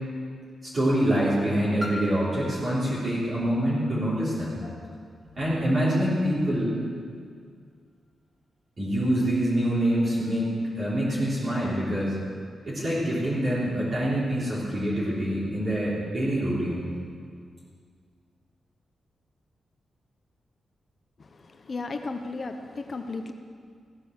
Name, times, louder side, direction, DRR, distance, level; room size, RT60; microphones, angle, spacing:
voice 1, 0.6-4.7 5.4-6.8 8.8-12.2 12.6-16.9, right 1 dB, 35° right, -9 dB, 3.5 m, -25 dB
Piano, 1.8-7.2 8.0-8.1, left 1 dB, 5° right, 1.4 m, -43 dB
voice 2, 21.6-23.3, left 3 dB, 35° left, 6 dB, 0.9 m, -34 dB
15.5 x 9.7 x 6.6 m, 2.1 s
wide cardioid pair, 150°, 0 cm